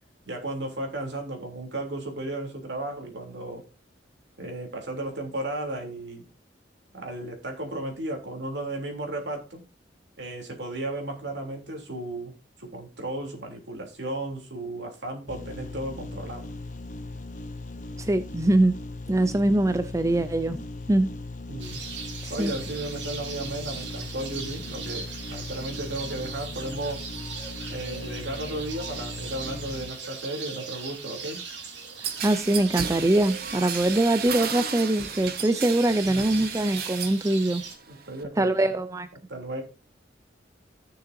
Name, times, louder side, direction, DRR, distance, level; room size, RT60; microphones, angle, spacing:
voice 1, 0.3-3.7 4.4-6.3 6.9-9.6 10.2-16.5 21.5-21.8 22.3-27.1 27.7-31.4 36.0-36.5 37.9-38.7 39.3-39.6, right 1 dB, 70° right, 3.4 m, -34 dB
sound 1, 15.3-29.9, left 2 dB, 45° left, 1.2 m, -39 dB
voice 2, 18.0-18.7 19.1-20.6 20.9-21.1 22.4-22.5 32.2-37.6 38.4-39.1, right 1 dB, 15° right, 0.5 m, -23 dB
sound 2, 21.6-37.8, right 5 dB, 85° right, 2.7 m, -39 dB
sound 3, 32.0-37.2 37.6-38.2, right 7 dB, 55° right, 1.0 m, -34 dB
16.0 x 6.8 x 2.8 m
head